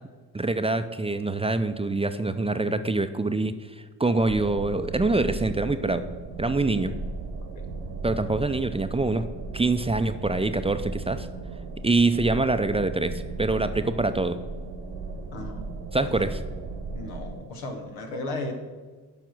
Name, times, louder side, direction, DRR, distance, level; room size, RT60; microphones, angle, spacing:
voice 1, 0.3-3.5 4.0-6.0 6.4-7.0 8.0-9.3 9.5-11.3 11.8-14.4 15.9-16.4, right 2 dB, 15° right, 10 dB, 0.5 m, -25 dB
sound 1, 4.1-17.4, right 3 dB, 70° right, 1.2 m, -36 dB
voice 2, 15.3-15.7 16.0-16.4 16.9-18.5, left 2 dB, 90° left, 3 dB, 1.1 m, -35 dB
6.9 x 5.3 x 6.1 m, 1.4 s
hypercardioid pair, 45°, 43 cm